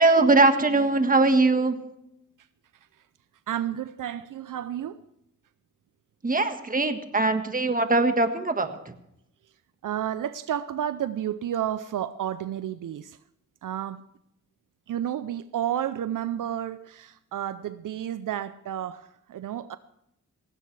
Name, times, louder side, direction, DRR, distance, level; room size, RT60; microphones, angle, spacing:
voice 1, 0.0-1.8 6.2-8.8, right 3 dB, 25° right, 1.6 m, -21 dB
voice 2, 3.5-5.0 9.8-13.2 13.6-14.0 14.9-19.8, right 10 dB, 75° right, 0.6 m, -31 dB
18.0 x 16.5 x 3.3 m
cardioid pair, 90°, 32 cm